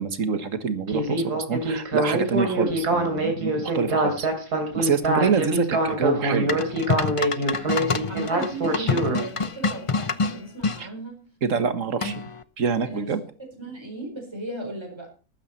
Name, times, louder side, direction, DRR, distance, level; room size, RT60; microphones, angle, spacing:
voice 1, 0.0-4.3 4.7-6.7 10.8-10.9 11.4-12.1 12.6-13.2, right 5 dB, 55° right, 11 dB, 1.8 m, -26 dB
Speech synthesizer, 0.9-9.2, right 1 dB, 80° right, 3.7 m, -24 dB
sound 1, 6.5-10.8 12.0-12.4, left 4 dB, 40° left, 0.4 m, -27 dB
voice 2, 8.1-11.2 11.6-11.7 12.0-12.1 12.8-13.1 13.6-15.1, right 1 dB, 15° right, 1 dB, 4.6 m, -36 dB
14.5 x 13.0 x 4.3 m, 0.35 s
omnidirectional pair, 1.7 m